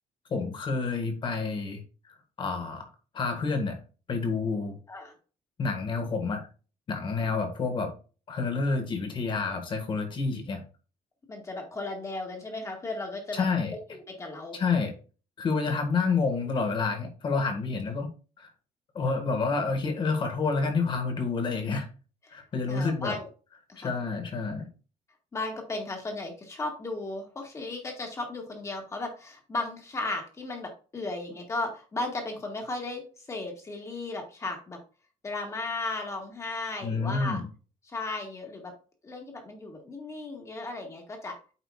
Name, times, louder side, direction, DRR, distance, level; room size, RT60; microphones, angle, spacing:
voice 1, 0.3-1.8 2.4-2.8 3.1-3.8 4.1-4.7 5.6-6.4 6.9-7.9 8.3-10.6 13.3-13.8 14.5-14.9 15.4-18.1 18.4-18.5 18.9-21.9 22.3-23.2 23.8-24.7 36.8-37.5, left 4 dB, 40° left, 5 dB, 1.7 m, -28 dB
voice 2, 11.3-13.5 13.9-14.6 22.7-23.3 23.7-24.0 25.3-34.8 35.2-37.4 37.8-38.7 39.0-41.3, left 2 dB, 25° left, 3 dB, 1.8 m, -35 dB
8.9 x 5.1 x 2.4 m, 0.35 s
cardioid pair, 160°, 12 cm